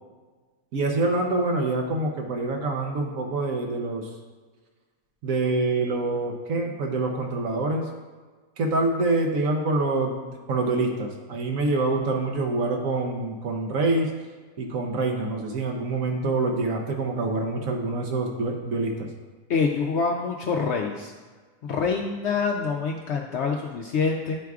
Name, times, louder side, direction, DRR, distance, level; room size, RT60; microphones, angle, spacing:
voice 1, 0.7-4.1 5.2-7.9 8.6-14.1 14.6-19.1, right 2 dB, 80° right, 1 dB, 1.2 m, -26 dB
voice 2, 19.5-21.1 21.6-24.4, left 5 dB, 65° left, 1 dB, 0.7 m, -26 dB
11.5 x 4.6 x 2.3 m, 1.4 s
omnidirectional pair, 1.4 m